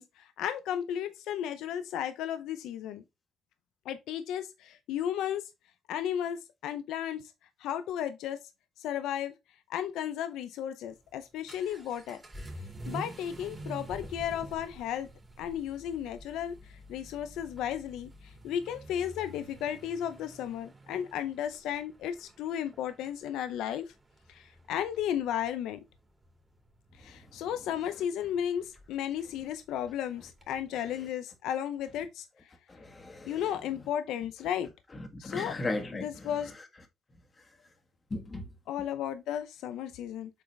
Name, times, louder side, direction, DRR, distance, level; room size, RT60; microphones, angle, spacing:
voice 1, 0.0-3.0 3.8-5.4 5.9-7.2 7.6-8.4 8.8-9.3 9.7-12.2 12.9-15.1 15.4-16.5 16.9-23.9 24.3-25.8 27.0-32.2 33.2-34.7 35.2-35.5 36.0-36.5 38.7-40.4, left 10 dB, 90° left, 0.7 m, -34 dB
Vehicle / Accelerating revving vroom, 10.9-30.7, right 1 dB, 20° right, 2.3 m, -49 dB
voice 2, 32.7-33.5 35.2-36.3 38.1-38.5, left 2 dB, 30° left, 1.8 m, -36 dB
7.3 x 4.0 x 3.3 m
cardioid pair, 90°, 0 cm